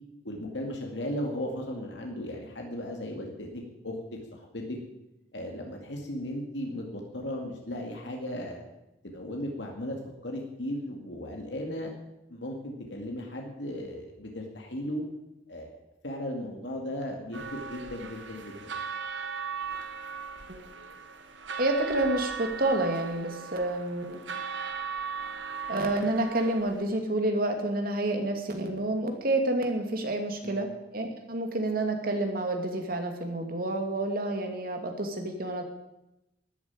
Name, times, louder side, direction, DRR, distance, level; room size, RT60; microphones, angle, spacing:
voice 1, 0.2-4.0 4.3-4.8 5.3-8.6 9.0-10.0 10.2-11.9 12.3-15.0 15.5-15.7 16.0-18.8 30.4-30.6, left 1 dB, 70° left, 1 dB, 2.3 m, -36 dB
sound 1, 17.3-26.8, right 5 dB, 85° right, 1.6 m, -38 dB
voice 2, 21.6-24.2 25.7-35.6, right 2 dB, 55° right, 4 dB, 2.4 m, -29 dB
13.0 x 9.2 x 8.9 m, 0.92 s
head